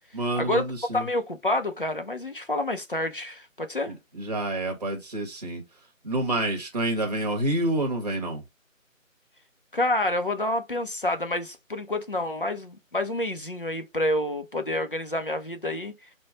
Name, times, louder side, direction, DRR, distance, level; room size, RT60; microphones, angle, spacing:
voice 1, 0.1-1.1 3.9-5.6 6.0-8.4, right 1 dB, 30° right, 0.9 m, -28 dB
voice 2, 0.9-3.9 9.7-15.9, left 1 dB, 45° left, 0.4 m, -28 dB
3.0 x 2.1 x 3.7 m
figure-of-eight pair, 160°, 40 cm